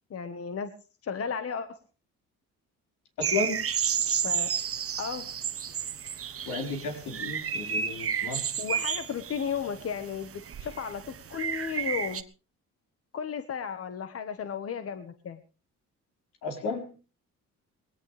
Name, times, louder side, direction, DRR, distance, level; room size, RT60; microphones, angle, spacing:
voice 1, 0.1-0.7 1.0-1.8 4.2-4.5 5.0-5.3 8.6-12.2 13.1-15.4, left 7 dB, 50° left, 9 dB, 1.4 m, -34 dB
voice 2, 3.2-3.6 6.5-8.5 11.7-11.9 16.4-16.9, left 3 dB, 85° left, 2 dB, 4.9 m, -33 dB
sound 1, 3.2-12.2, right 8 dB, 50° right, 1.2 m, -32 dB
20.5 x 17.5 x 3.4 m, 0.36 s
cardioid pair, 90°, 30 cm